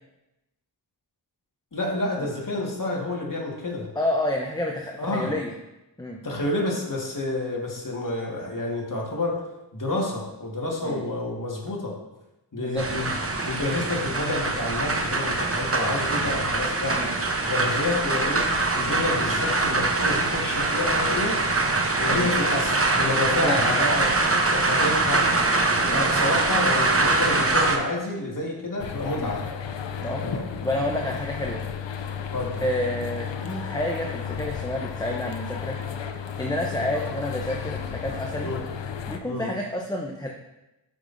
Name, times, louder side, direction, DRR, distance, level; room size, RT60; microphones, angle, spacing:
voice 1, 1.7-3.9 5.0-5.3 6.2-9.4 9.7-12.0 12.5-13.1 13.4-17.0 17.4-18.5 18.8-21.4 22.0-24.1 24.5-25.3 25.7-29.4 30.2-30.4 32.3-32.6 36.9-37.1 38.4-38.6 39.2-39.5, left 2 dB, 45° left, -2 dB, 1.8 m, -29 dB
voice 2, 3.9-5.5 6.0-6.2 10.8-11.0 12.6-12.9 16.9-17.1 22.1-22.3 23.4-23.7 25.8-26.0 29.2-29.3 30.0-30.3 30.6-31.6 32.6-35.8 36.4-38.5 39.1-40.3, left 1 dB, 10° left, 0 dB, 0.7 m, -29 dB
sound 1, 12.8-27.8, right 3 dB, 30° right, 0.9 m, -23 dB
sound 2, 28.8-39.2, left 7 dB, 85° left, 0.6 m, -33 dB
11.5 x 5.4 x 2.7 m, 0.96 s
wide cardioid pair, 60°, 43 cm